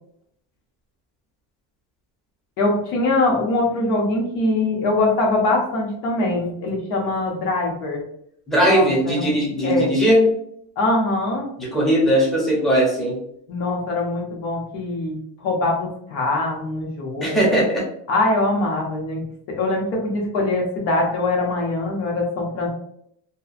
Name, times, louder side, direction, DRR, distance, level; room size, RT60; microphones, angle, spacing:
voice 1, 2.6-8.0 8.7-9.3 9.6-9.9 10.8-11.5 13.5-15.2 15.4-17.6 18.1-19.2 19.5-22.7, left 2 dB, 90° left, -1 dB, 1.0 m, -22 dB
voice 2, 8.5-10.3 11.6-13.2 17.2-17.8, equal, ahead, -5 dB, 0.5 m, -19 dB
2.8 x 2.3 x 2.4 m, 0.70 s
cardioid pair, 155°, 42 cm